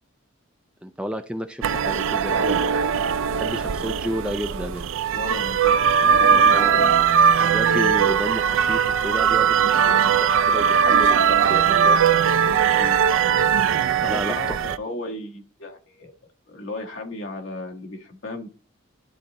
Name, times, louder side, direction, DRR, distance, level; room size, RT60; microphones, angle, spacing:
voice 1, 0.8-2.7 3.3-4.9 6.5-6.9 7.4-9.6 9.8-12.2 14.1-14.4, equal, 5° right, 7 dB, 0.4 m, -31 dB
sound 1, 1.6-14.8, right 7 dB, 75° right, 0.4 m, -19 dB
voice 2, 5.1-6.9 12.7-13.0 14.0-16.1 16.5-18.5, left 2 dB, 70° left, 1 dB, 1.5 m, -35 dB
11.5 x 4.0 x 3.0 m, 0.37 s
head